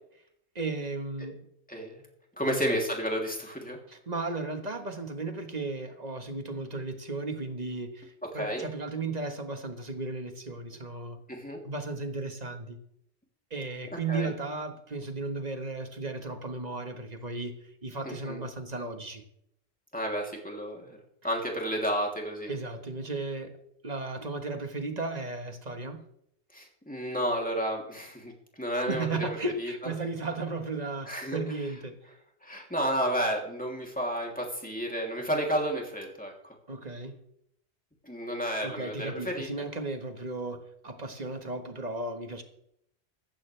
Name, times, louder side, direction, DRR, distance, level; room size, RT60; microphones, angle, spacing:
voice 1, 0.5-1.5 2.5-2.8 3.9-11.2 11.6-12.8 13.5-19.2 22.5-23.6 23.8-26.0 28.9-32.0 36.7-37.2 38.6-42.4, right 3 dB, 40° right, 1.5 m, -35 dB
voice 2, 1.7-2.0 2.4-3.8 8.3-8.7 11.3-11.6 14.1-14.3 18.0-18.4 19.9-21.0 21.2-22.5 26.5-29.1 29.6-29.7 31.1-31.4 32.4-36.5 38.0-39.5, equal, 5° left, 2.9 m, -31 dB
14.5 x 14.5 x 3.4 m
omnidirectional pair, 1.1 m